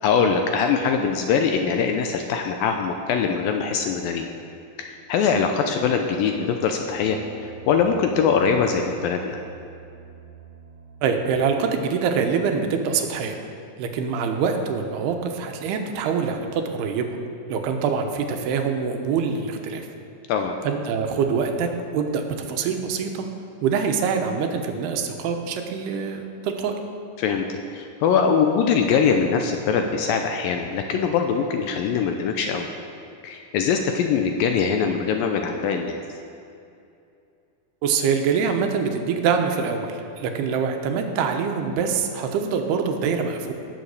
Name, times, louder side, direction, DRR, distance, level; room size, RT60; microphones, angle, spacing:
voice 1, 0.0-4.3 4.8-7.2 7.7-9.4 20.3-20.6 27.2-32.7 33.2-36.0, left 6 dB, 80° left, 4 dB, 2.2 m, -22 dB
sound 1, 5.4-12.5, right 1 dB, 65° left, 2.8 m, -45 dB
voice 2, 11.0-13.4 13.8-17.2 17.5-19.9 20.6-23.3 23.6-26.7 37.8-43.5, right 6 dB, 85° right, 4 dB, 3.0 m, -24 dB
17.0 x 7.0 x 6.5 m, 2.5 s
omnidirectional pair, 4.6 m